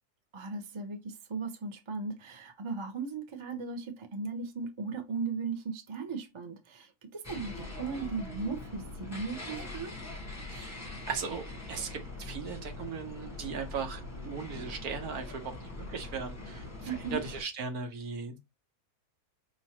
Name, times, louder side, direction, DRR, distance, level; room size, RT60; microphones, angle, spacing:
voice 1, 0.3-9.9 16.9-17.2, right 4 dB, 30° right, 0.5 m, -37 dB
sound 1, 7.2-17.4, left 2 dB, 10° left, 1.0 m, -42 dB
voice 2, 10.5-18.4, right 5 dB, 70° right, 1.4 m, -38 dB
5.2 x 3.2 x 2.8 m
omnidirectional pair, 1.7 m